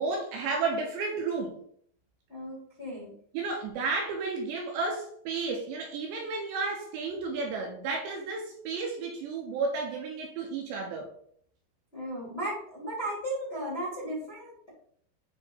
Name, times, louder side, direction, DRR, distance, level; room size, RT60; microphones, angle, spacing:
voice 1, 0.0-1.6 3.3-11.1, right 4 dB, 80° right, 1 dB, 2.7 m, -32 dB
voice 2, 2.3-3.1 11.9-14.7, right 1 dB, 65° left, -6 dB, 0.6 m, -35 dB
9.0 x 3.4 x 3.8 m, 0.63 s
omnidirectional pair, 5.7 m